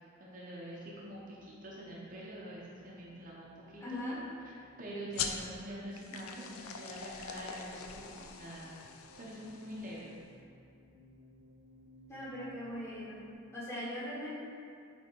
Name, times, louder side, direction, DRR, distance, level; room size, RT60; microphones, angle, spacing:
voice 1, 0.2-4.0 4.8-8.7 9.2-10.2, right 1 dB, 40° right, -5 dB, 0.9 m, -45 dB
sound 1, 0.7-13.3, equal, 50° left, 0.9 m, -61 dB
voice 2, 3.8-4.2 12.1-13.2 13.5-14.3, equal, 15° left, -9 dB, 1.7 m, -40 dB
sound 2, 5.1-10.2, left 6 dB, 90° left, 0.5 m, -43 dB
8.6 x 3.6 x 4.6 m, 2.4 s
head